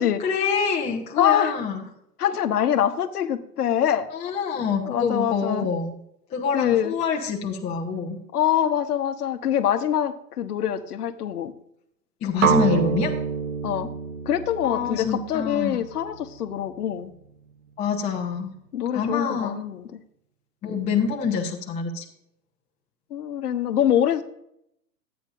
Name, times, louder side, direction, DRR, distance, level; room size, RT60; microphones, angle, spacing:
voice 1, 0.2-1.8 4.1-5.9 6.3-8.2 12.2-13.1 14.6-15.8 17.8-18.5 18.9-19.5 20.6-22.0, left 6 dB, 15° left, 0 dB, 0.7 m, -26 dB
voice 2, 1.2-1.5 2.2-4.1 4.8-5.7 6.5-6.9 8.3-11.5 13.6-13.9 14.3-17.1 18.7-20.0 23.1-24.2, left 10 dB, 65° left, 10 dB, 1.0 m, -24 dB
sound 1, 12.4-16.4, right 7 dB, 55° right, 0.9 m, -27 dB
12.5 x 8.8 x 2.6 m, 0.75 s
hypercardioid pair, 120°, 50 cm